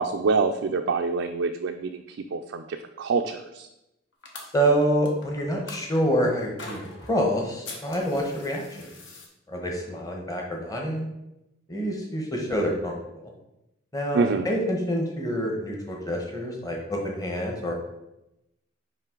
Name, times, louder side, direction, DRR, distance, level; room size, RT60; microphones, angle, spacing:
voice 1, 0.0-2.0 2.3-3.7 14.1-14.5, right 4 dB, 70° right, 4 dB, 0.4 m, -26 dB
sound 1, 4.2-6.0 6.6-7.2 7.6-9.3, left 2 dB, 65° left, 1.1 m, -42 dB
voice 2, 4.5-8.9 9.5-11.1 11.7-12.9 13.9-17.7, equal, 20° left, 0 dB, 1.0 m, -27 dB
5.6 x 5.1 x 3.8 m, 0.89 s
head